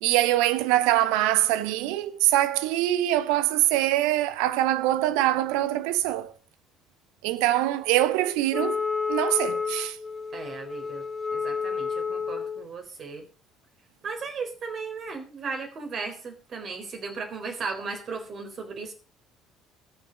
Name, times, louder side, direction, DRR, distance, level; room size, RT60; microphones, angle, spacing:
voice 1, 0.0-6.3 7.2-8.8 9.1-10.0, right 14 dB, 65° right, 0.9 m, -23 dB
Wind instrument woodwind instrument, 8.5-12.7, left 5 dB, 20° left, 1.2 m, -30 dB
voice 2, 10.3-11.0 11.3-13.2 14.0-18.9, right 4 dB, 40° right, 4.0 m, -36 dB
20.5 x 6.9 x 5.1 m
figure-of-eight pair, 55°, 0 cm